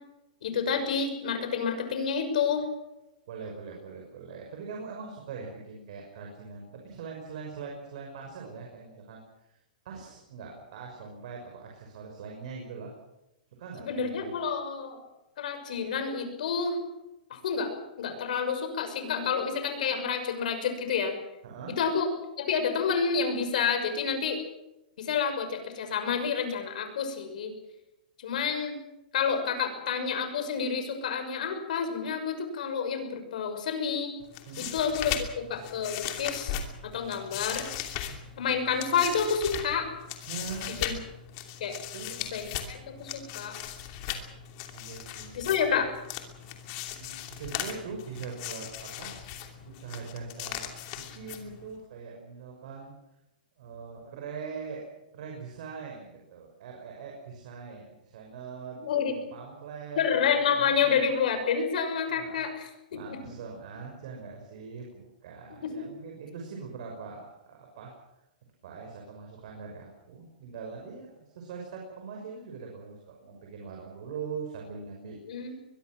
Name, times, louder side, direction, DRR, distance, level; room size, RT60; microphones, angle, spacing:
voice 1, 0.4-2.6 13.9-15.0 15.4-16.8 17.3-17.7 18.0-21.1 21.8-22.1 22.4-24.4 25.0-27.5 28.2-28.8 29.1-34.2 34.6-35.1 35.5-37.7 38.4-39.9 40.8-40.9 41.6-41.8 42.3-43.6 45.3-45.9 58.8-59.1 60.0-62.5 62.9-63.2 65.6-65.9 75.3-75.5, left 6 dB, 60° left, 7 dB, 6.2 m, -29 dB
voice 2, 3.3-9.2 9.5-9.6 9.8-12.9 13.6-14.3 21.4-21.8 34.5-34.7 40.3-40.8 41.9-42.3 44.7-45.4 46.4-46.5 47.0-49.1 49.6-52.9 53.6-58.8 59.1-60.9 62.1-62.4 62.9-67.9 68.6-75.5, right 5 dB, 50° right, 0 dB, 6.0 m, -42 dB
sound 1, 34.2-51.8, left 10 dB, 30° left, 2.8 m, -38 dB
23.0 x 22.5 x 6.3 m, 0.92 s
hypercardioid pair, 170°, 5 cm